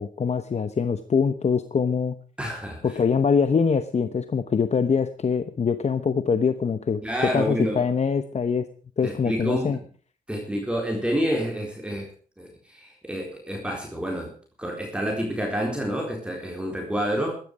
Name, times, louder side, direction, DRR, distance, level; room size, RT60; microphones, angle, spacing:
voice 1, 0.0-2.1 2.8-7.0 7.3-8.7 9.0-9.8, left 6 dB, 50° left, 11 dB, 1.0 m, -23 dB
voice 2, 2.4-2.9 7.0-7.9 9.0-9.8 10.3-12.1 12.4-14.3 14.6-17.4, equal, 5° right, 0 dB, 4.2 m, -28 dB
16.0 x 13.0 x 4.9 m, 0.42 s
wide cardioid pair, 120°, 15 cm